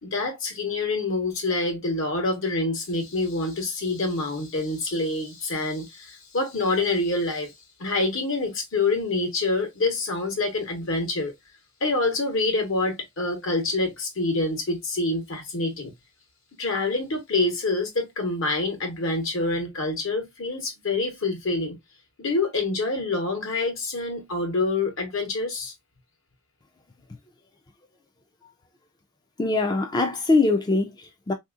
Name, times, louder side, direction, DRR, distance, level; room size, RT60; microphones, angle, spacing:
voice 1, 0.0-7.5 7.8-11.3 11.8-15.9 16.6-21.8 22.2-25.7, left 2 dB, 65° left, 1.2 m, -26 dB
voice 2, 29.4-31.3, left 3 dB, 20° left, 0.4 m, -22 dB
3.5 x 2.7 x 2.3 m
head